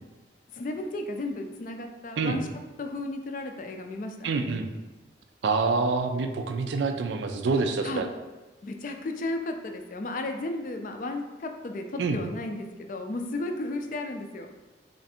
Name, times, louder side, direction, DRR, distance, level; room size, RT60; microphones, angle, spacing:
voice 1, 0.5-2.5 2.8-4.3 7.8-8.0 8.6-14.5, left 2 dB, 45° left, 5 dB, 0.3 m, -34 dB
voice 2, 4.2-4.7 5.4-8.1 12.0-12.2, right 4 dB, 80° right, 6 dB, 0.4 m, -26 dB
3.3 x 2.5 x 4.1 m, 1.2 s
head